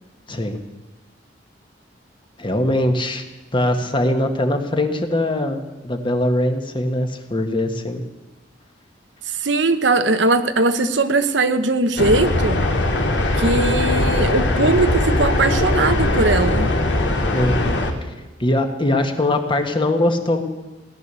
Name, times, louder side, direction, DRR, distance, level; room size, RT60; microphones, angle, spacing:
voice 1, 0.3-0.6 2.4-3.2 3.5-8.0 17.3-18.1 18.4-20.4, left 1 dB, 25° left, 6 dB, 1.6 m, -21 dB
voice 2, 9.3-12.7 13.4-16.7, right 3 dB, 80° right, 9 dB, 1.1 m, -19 dB
sound 1, 12.0-17.9, left 1 dB, 75° left, 2.4 m, -20 dB
17.5 x 11.5 x 7.0 m, 1.1 s
head